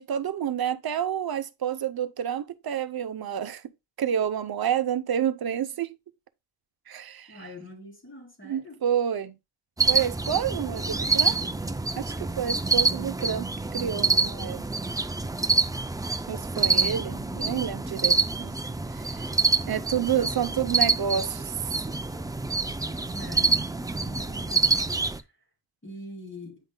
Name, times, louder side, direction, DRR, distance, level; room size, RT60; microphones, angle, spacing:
voice 1, 0.0-3.6 4.0-5.9 6.9-7.4 8.4-9.3 9.9-11.4 12.0-14.7 16.3-18.5 18.9-19.3 19.7-21.5, right 9 dB, 55° right, 0.7 m, -29 dB
voice 2, 7.3-8.8 16.6-16.9 17.3-17.8 23.1-23.7 24.0-24.6 25.8-26.6, left 1 dB, 25° left, 3.8 m, -43 dB
sound 1, 9.8-25.2, right 4 dB, 10° right, 0.3 m, -26 dB
9.1 x 5.3 x 2.2 m
wide cardioid pair, 115°, 43 cm